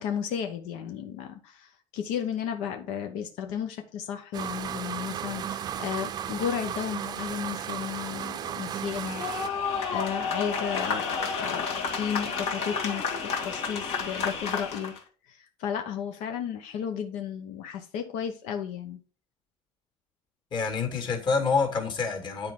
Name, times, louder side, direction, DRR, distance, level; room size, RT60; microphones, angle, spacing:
voice 1, 0.0-9.2 9.9-14.9 15.3-19.0, left 8 dB, 90° left, 1.0 m, -34 dB
sound 1, 4.3-9.5, right 9 dB, 35° right, 0.5 m, -35 dB
sound 2, 9.1-15.0, left 5 dB, 70° left, 1.9 m, -30 dB
voice 2, 20.5-22.5, left 5 dB, 40° left, 2.1 m, -27 dB
9.9 x 4.6 x 3.7 m
cardioid pair, 145°, 12 cm